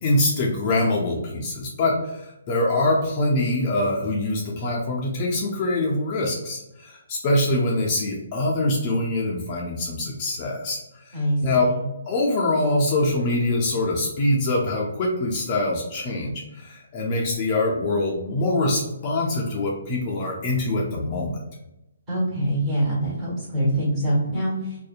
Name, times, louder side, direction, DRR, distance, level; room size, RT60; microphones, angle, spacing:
voice 1, 0.0-11.7 12.1-21.4, left 2 dB, 30° left, -2 dB, 0.4 m, -24 dB
voice 2, 11.1-11.8 22.1-24.8, right 1 dB, 20° right, -7 dB, 1.3 m, -24 dB
2.6 x 2.1 x 2.3 m, 0.92 s
hypercardioid pair, 155°, 0 cm